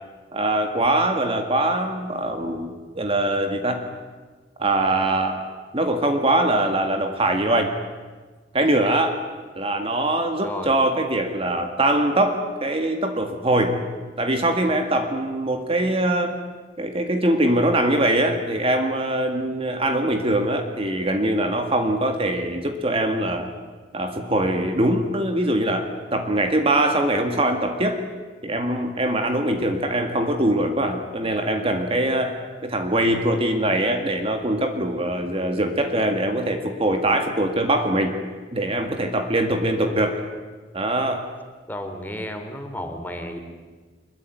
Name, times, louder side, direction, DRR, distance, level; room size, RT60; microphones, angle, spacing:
voice 1, 0.3-3.8 4.6-5.4 5.7-7.7 8.5-9.2 9.6-13.8 14.2-16.4 16.8-23.5 23.9-28.0 28.4-32.3 32.6-38.2 38.5-40.2 40.7-41.2, right 1 dB, 30° right, 5 dB, 1.9 m, -22 dB
voice 2, 41.7-43.4, left 1 dB, 10° left, 6 dB, 2.8 m, -32 dB
25.0 x 21.5 x 9.4 m, 1.4 s
head